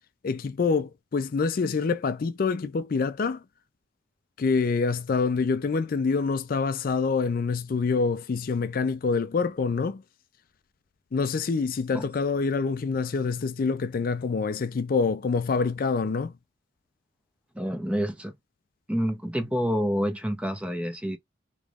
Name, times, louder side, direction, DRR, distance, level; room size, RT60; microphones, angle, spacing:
voice 1, 0.2-3.4 4.4-10.0 11.1-16.3, left 4 dB, 45° left, 0.4 m, -26 dB
voice 2, 17.5-18.3 18.9-21.2, equal, 5° right, 0.6 m, -28 dB
3.4 x 3.0 x 2.3 m
head